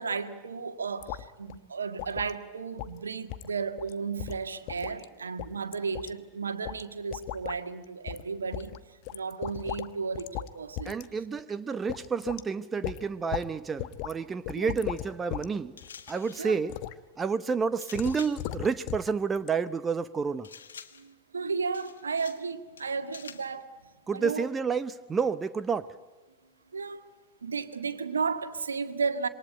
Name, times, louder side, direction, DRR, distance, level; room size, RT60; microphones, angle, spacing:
voice 1, 0.0-10.9 14.5-14.7 16.4-16.6 20.9-23.7 24.1-24.5 26.7-27.0 27.4-29.3, right 5 dB, 75° right, 1.8 m, -34 dB
sound 1, 1.0-1.2 1.5-1.6 2.0-2.3 2.8-3.0 3.3-3.5 3.8-3.9 4.2-5.0 5.4-6.1 6.6-6.8 7.1-7.6 8.1-8.2 8.5-9.9 10.1-10.5 10.8-11.1 11.4-11.5 11.9-12.4 12.8-13.5 13.8-14.1 14.5-15.5 15.8-16.1 16.7-17.0 17.9-19.1 19.4-19.5, left 14 dB, 45° left, 1.1 m, -37 dB
voice 2, 10.8-15.7 16.1-16.7 17.2-20.5 24.1-25.9, right 5 dB, 15° right, 0.8 m, -30 dB
sound 2, 15.8-16.5 17.8-18.5 20.4-21.1 21.7-22.5 22.8-23.5, left 7 dB, 70° left, 1.5 m, -48 dB
27.0 x 23.5 x 9.0 m
figure-of-eight pair, 90°, 0 cm